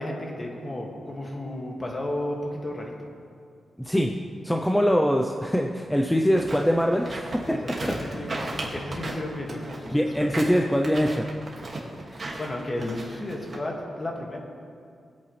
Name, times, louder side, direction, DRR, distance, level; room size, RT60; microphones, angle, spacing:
voice 1, 0.0-3.1 7.5-10.3 12.1-14.4, left 1 dB, 30° left, -1 dB, 2.2 m, -33 dB
voice 2, 3.8-4.1 4.4-7.6 9.9-11.3, equal, 5° left, 1 dB, 0.7 m, -23 dB
sound 1, 6.3-13.6, right 2 dB, 35° right, 2.2 m, -35 dB
22.5 x 8.5 x 3.4 m, 2.3 s
cardioid pair, 105°, 0 cm